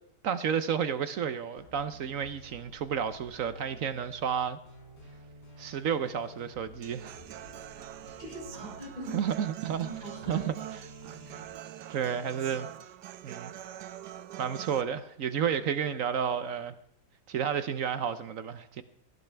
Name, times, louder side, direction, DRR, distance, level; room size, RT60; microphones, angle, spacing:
voice 1, 0.2-4.6 5.6-7.2 9.1-9.9 10.3-10.4 11.9-12.7 13.2-13.5 14.4-16.7 17.3-18.8, right 8 dB, 60° right, 1.0 m, -31 dB
sound 1, 1.6-11.5, right 1 dB, 80° left, 5.2 m, -52 dB
Human voice / Acoustic guitar, 6.8-14.8, right 12 dB, 85° right, 1.3 m, -44 dB
voice 2, 8.2-9.2 9.8-10.5, equal, 25° left, 7.2 m, -42 dB
18.0 x 15.0 x 3.4 m
omnidirectional pair, 1.8 m